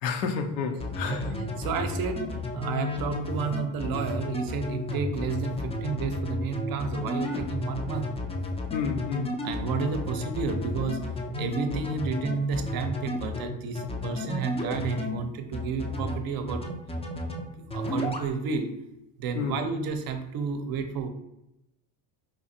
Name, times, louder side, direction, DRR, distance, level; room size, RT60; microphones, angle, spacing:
voice 1, 0.0-1.3 8.7-9.3 19.3-19.6, left 5 dB, 90° left, 0.7 m, -30 dB
sound 1, 0.8-15.2 15.5-16.2 16.5-17.4 17.7-18.3, left 2 dB, 15° left, 0.4 m, -32 dB
voice 2, 1.0-8.1 9.4-11.0 11.2-16.8 17.3-18.7 19.2-21.1, right 5 dB, 45° right, 0.6 m, -31 dB
4.8 x 2.5 x 2.7 m
supercardioid pair, 95°, 50 cm